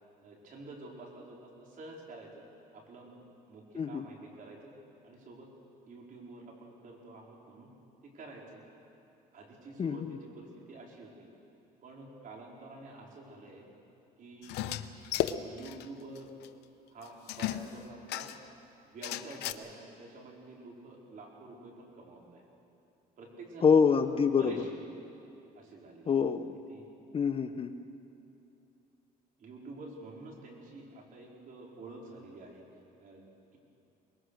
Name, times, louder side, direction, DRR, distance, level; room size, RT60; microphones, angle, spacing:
voice 1, 0.2-2.4 2.7-3.1 3.5-4.7 5.0-5.5 5.8-7.7 8.0-8.6 9.3-11.3 11.8-13.7 14.2-14.7 15.2-16.3 16.9-18.3 18.8-22.4 23.2-23.8 24.1-25.1 25.5-26.1 26.7-26.9 29.4-32.6 33.0-33.2, right 2 dB, 55° right, -1 dB, 4.6 m, -48 dB
voice 2, 3.7-4.1 9.8-10.2 23.6-24.6 26.1-26.6 27.1-27.7, left 6 dB, 35° left, 9 dB, 0.8 m, -26 dB
sound 1, 14.4-15.8 16.1-16.2 16.4-16.5 17.3-18.5 19.0-19.5, left 14 dB, 85° left, 0.8 m, -34 dB
23.5 x 20.5 x 6.5 m, 2.8 s
cardioid pair, 110°, 17 cm